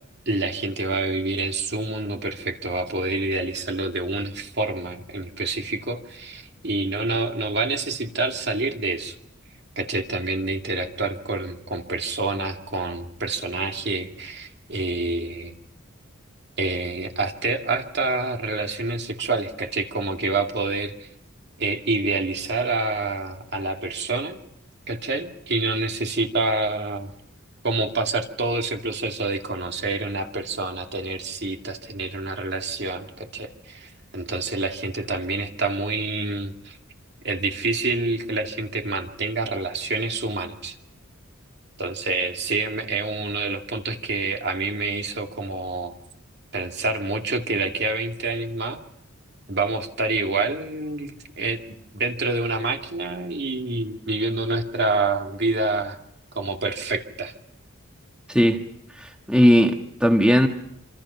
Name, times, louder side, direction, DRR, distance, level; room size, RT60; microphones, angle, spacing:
voice 1, 0.3-9.1 9.8-15.6 16.6-21.1 21.6-24.4 24.9-27.1 27.6-36.8 37.2-40.8 41.8-45.9 46.5-48.8 49.5-51.6 51.9-56.0 56.3-57.3, right 3 dB, 50° right, 3 dB, 2.6 m, -27 dB
voice 2, 58.3-58.6 59.0-60.5, equal, 5° right, 3 dB, 1.5 m, -18 dB
27.0 x 26.5 x 5.8 m, 0.76 s
head